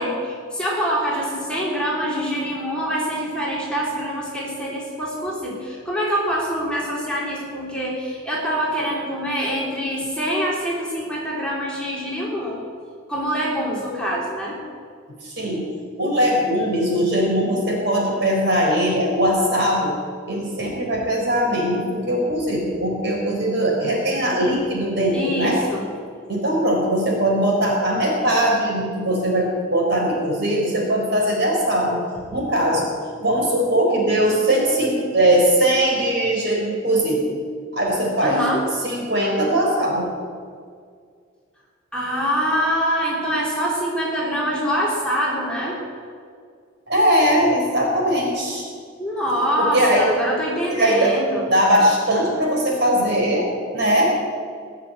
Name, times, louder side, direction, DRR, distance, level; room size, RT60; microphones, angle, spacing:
voice 1, 0.0-12.6 13.1-14.6 25.1-25.9 38.2-38.6 41.9-45.8 49.0-51.4, equal, 5° left, -5 dB, 3.1 m, -25 dB
voice 2, 15.2-15.7 16.0-20.0 20.2-25.6 26.3-32.0 32.3-32.9 33.2-37.4 37.7-38.4 38.8-40.1 46.9-48.7 49.6-50.1 50.6-51.2 51.5-53.5 53.7-54.0, equal, 55° right, -1 dB, 4.3 m, -20 dB
20.0 x 6.8 x 8.7 m, 2.1 s
head